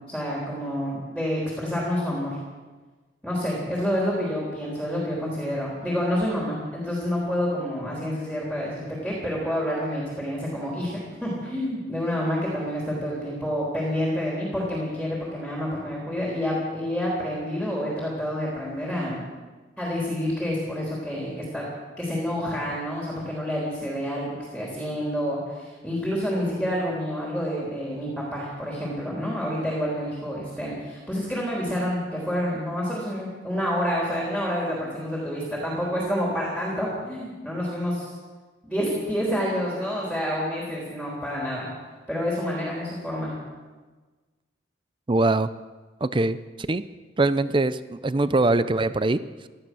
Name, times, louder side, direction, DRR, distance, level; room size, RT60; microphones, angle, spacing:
voice 1, 0.1-2.4 3.2-19.2 19.8-21.6 22.0-38.1 38.6-41.7 42.1-43.3, equal, ahead, -4 dB, 3.7 m, -28 dB
voice 2, 45.1-45.5 46.0-46.8 47.2-49.5, right 2 dB, 25° right, 14 dB, 0.5 m, -23 dB
17.5 x 13.0 x 6.3 m, 1.3 s
head